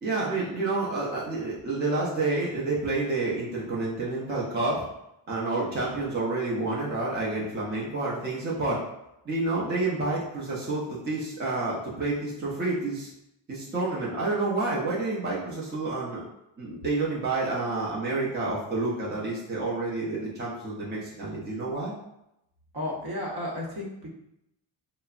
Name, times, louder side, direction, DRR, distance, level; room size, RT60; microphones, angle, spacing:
voice 1, 0.0-4.9 5.3-8.8 9.2-13.1 13.5-16.2 16.6-21.9, right 2 dB, 20° right, -5 dB, 0.6 m, -29 dB
voice 2, 22.7-24.1, left 1 dB, 50° right, -3 dB, 0.9 m, -33 dB
3.2 x 2.0 x 2.4 m, 0.85 s
cardioid pair, 95°, 49 cm